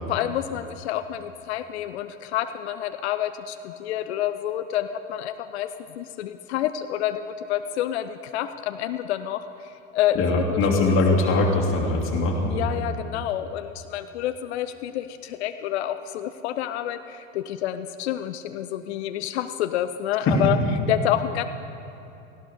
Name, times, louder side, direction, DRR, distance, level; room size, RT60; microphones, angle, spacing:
voice 1, 0.1-11.5 12.5-20.6 20.9-21.4, left 11 dB, 60° left, 10 dB, 0.7 m, -28 dB
voice 2, 10.1-12.6 20.3-20.4, left 2 dB, 35° left, -1 dB, 2.6 m, -22 dB
18.0 x 15.5 x 5.0 m, 3.0 s
figure-of-eight pair, 80°, 37 cm